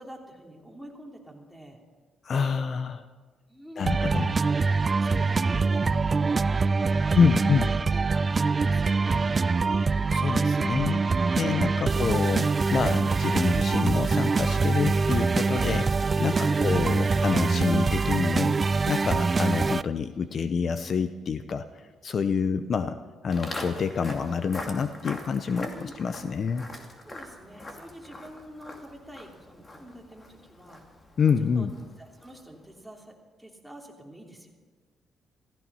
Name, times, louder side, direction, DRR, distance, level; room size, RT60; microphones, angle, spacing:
voice 1, 0.0-1.8 3.5-3.9 5.0-7.5 7.9-9.3 16.2-16.8 25.5-25.9 27.0-30.8 31.5-31.7 32.0-33.1 33.4-34.5, equal, ahead, -1 dB, 3.1 m, -45 dB
voice 2, 2.2-3.0 3.8-4.4 7.1-7.7 10.1-11.1 11.4-16.3 16.6-18.6 18.9-23.0 23.2-25.7 26.0-26.6 31.2-31.7, left 6 dB, 50° left, 10 dB, 0.7 m, -27 dB
sound 1, 3.8-19.8, right 4 dB, 30° right, 0.4 m, -24 dB
sound 2, 8.2-20.6, right 6 dB, 60° right, 2.3 m, -53 dB
Walk footsteps, 23.3-32.5, left 2 dB, 30° left, 2.5 m, -43 dB
15.5 x 15.0 x 5.6 m, 1.4 s
cardioid pair, 90°, 0 cm